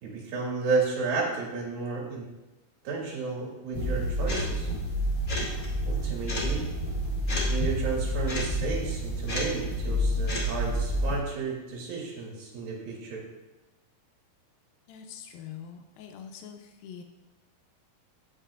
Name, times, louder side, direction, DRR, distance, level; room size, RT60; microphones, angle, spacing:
voice 1, 0.0-2.3 2.9-4.7 5.9-6.7 7.5-13.2, right 4 dB, 75° right, -2 dB, 3.6 m, -32 dB
sound 1, 3.7-11.2, equal, 30° left, 2.1 m, -29 dB
voice 2, 14.9-17.0, left 8 dB, 80° left, 4 dB, 2.5 m, -44 dB
17.0 x 5.8 x 2.4 m, 1.1 s
omnidirectional pair, 4.2 m